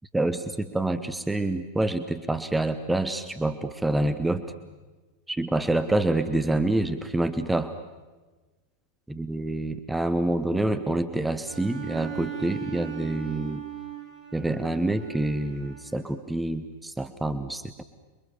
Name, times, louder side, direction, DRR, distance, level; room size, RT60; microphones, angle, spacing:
voice 1, 0.1-4.4 5.3-7.7 9.1-13.6 14.3-17.8, right 2 dB, 5° right, 10 dB, 1.1 m, -27 dB
Bowed string instrument, 11.5-16.2, right 10 dB, 25° right, 6.4 m, -39 dB
28.0 x 23.5 x 7.1 m, 1.3 s
figure-of-eight pair, 90°, 0 cm